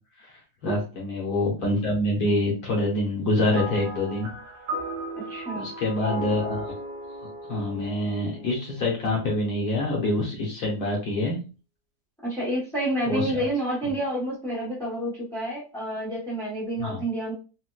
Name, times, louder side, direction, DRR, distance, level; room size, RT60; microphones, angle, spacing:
voice 1, 0.6-4.3 5.3-6.7 7.5-11.4 13.1-13.5 13.8-13.9 16.8-17.0, left 1 dB, 70° left, -2 dB, 1.3 m, -26 dB
sound 1, 3.5-9.0, right 1 dB, 65° right, 0.7 m, -36 dB
voice 2, 5.3-5.7 12.2-17.3, right 1 dB, 5° left, -7 dB, 0.5 m, -29 dB
4.1 x 2.1 x 2.2 m, 0.33 s
omnidirectional pair, 1.8 m